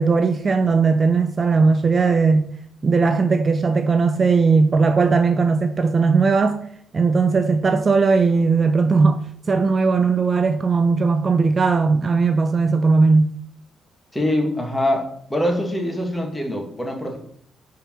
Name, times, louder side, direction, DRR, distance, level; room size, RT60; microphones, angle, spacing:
voice 1, 0.0-2.5 2.8-6.6 6.9-9.2 9.5-13.3, right 4 dB, 35° right, 0.5 m, -18 dB
voice 2, 14.1-17.2, left 1 dB, 10° left, 1.8 m, -24 dB
4.9 x 4.7 x 5.9 m
cardioid pair, 90°, 0 cm